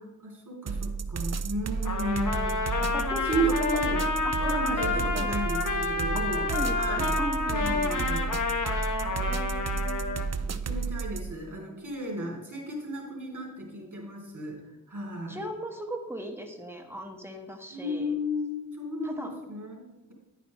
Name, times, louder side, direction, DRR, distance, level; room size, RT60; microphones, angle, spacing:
voice 1, 0.0-4.0 4.4-8.3 8.9-14.6 14.9-15.4 17.7-20.1, right 1 dB, 70° right, -2 dB, 3.2 m, -34 dB
sound 1, 0.7-11.3, right 5 dB, 55° right, 0.5 m, -32 dB
Trumpet, 1.8-10.3, left 4 dB, 75° left, 1.2 m, -29 dB
voice 2, 2.9-3.8 4.2-5.4 6.1-8.2 15.3-18.1 19.0-19.3, equal, 10° right, 3 dB, 1.5 m, -38 dB
10.0 x 9.2 x 3.1 m, 1.1 s
wide cardioid pair, 50°, 31 cm